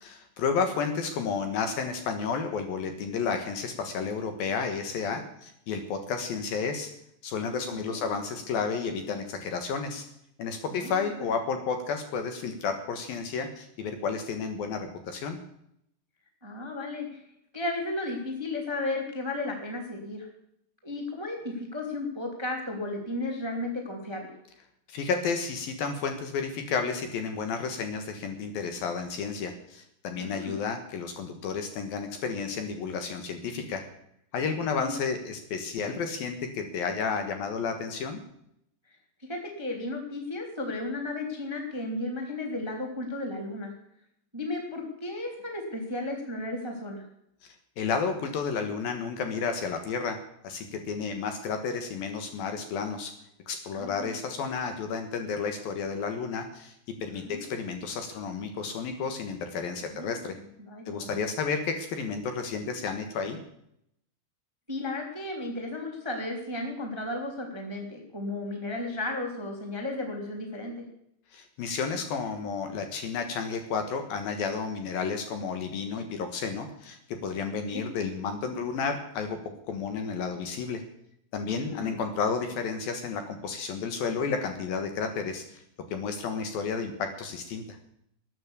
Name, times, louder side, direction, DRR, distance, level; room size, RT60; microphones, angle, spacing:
voice 1, 0.0-6.9 7.2-10.1 10.4-15.4 24.9-33.8 34.3-38.2 47.8-50.2 50.4-53.1 53.5-56.8 57.0-60.4 60.9-63.4 71.3-80.8 81.3-85.6 85.9-87.8, left 5 dB, 65° left, 6 dB, 2.8 m, -32 dB
voice 2, 7.7-8.0 10.7-11.0 16.4-17.2 17.5-20.3 20.8-24.3 30.1-30.6 34.8-35.0 39.3-43.7 44.3-47.1 53.7-54.1 57.2-57.4 59.8-60.3 60.6-61.3 64.7-70.8 77.7-77.8 81.5-82.0, left 2 dB, 10° right, 2 dB, 1.9 m, -34 dB
13.0 x 9.6 x 8.4 m, 0.74 s
omnidirectional pair, 5.0 m